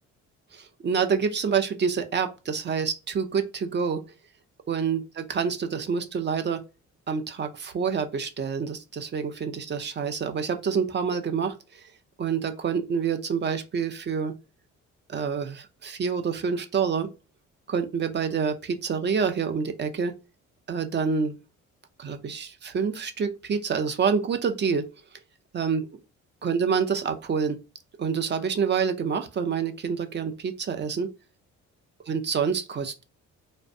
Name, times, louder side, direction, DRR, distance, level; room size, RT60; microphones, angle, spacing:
voice 1, 0.5-4.0 4.7-6.6 7.1-11.9 12.2-14.3 15.1-17.1 17.7-20.1 20.7-21.4 22.0-24.9 25.5-25.9 26.4-27.6 28.0-31.1 32.1-33.0, right 6 dB, 35° right, 0.5 m, -27 dB
2.5 x 2.1 x 2.6 m
cardioid pair, 90°, 30 cm